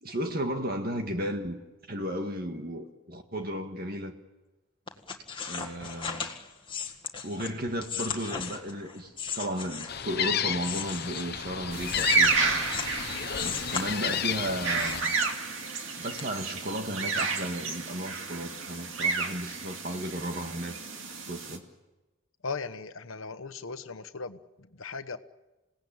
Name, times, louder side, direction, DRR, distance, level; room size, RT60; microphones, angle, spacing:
voice 1, 0.0-1.6 1.9-4.1 5.5-6.3 7.2-12.6 13.4-15.1 16.0-20.8 21.1-21.6, right 1 dB, 45° right, 5 dB, 1.8 m, -34 dB
sound 1, 4.9-10.1 10.6-13.0 13.3-14.4 14.8-15.8 16.2-16.3, left 6 dB, 25° left, 1.8 m, -37 dB
Gull seagull, 9.9-15.0, left 8 dB, 45° left, 1.0 m, -32 dB
sound 2, 11.7-21.6, right 4 dB, 60° right, 2.4 m, -31 dB
voice 2, 22.4-25.2, left 4 dB, 65° left, 10 dB, 1.2 m, -38 dB
28.0 x 18.0 x 8.9 m, 1.1 s
head